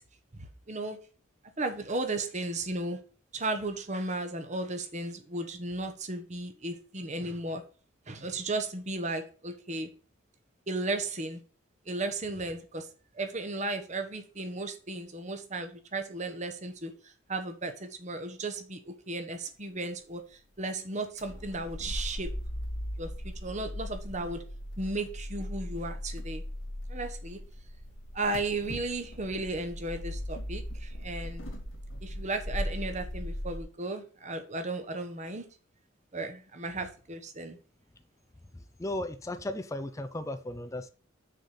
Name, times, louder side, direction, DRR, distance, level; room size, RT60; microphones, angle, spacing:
voice 1, 0.3-1.0 1.6-3.0 3.3-7.6 8.1-9.9 10.7-11.4 11.9-12.9 13.1-16.9 17.3-22.3 23.0-24.4 24.8-26.4 26.9-27.4 28.1-31.4 32.0-35.5 36.1-37.6, right 2 dB, 35° right, 7 dB, 1.1 m, -35 dB
sound 1, 21.2-33.6, left 1 dB, 80° left, 2.6 m, -38 dB
voice 2, 38.5-40.9, left 1 dB, 15° left, 9 dB, 0.5 m, -36 dB
6.4 x 4.3 x 6.4 m, 0.38 s
head